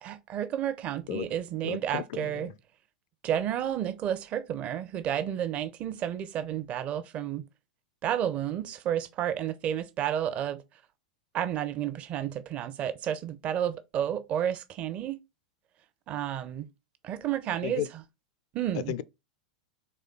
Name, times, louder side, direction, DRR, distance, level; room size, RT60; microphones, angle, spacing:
voice 1, 0.0-2.5 3.2-7.4 8.0-10.6 11.3-15.2 16.1-16.7 17.0-17.8 18.5-18.9, right 10 dB, 35° right, 0.6 m, -31 dB
voice 2, 1.6-2.5 17.6-17.9 18.7-19.0, left 12 dB, 50° left, 0.4 m, -34 dB
4.2 x 3.2 x 3.8 m
figure-of-eight pair, 90°, 4 cm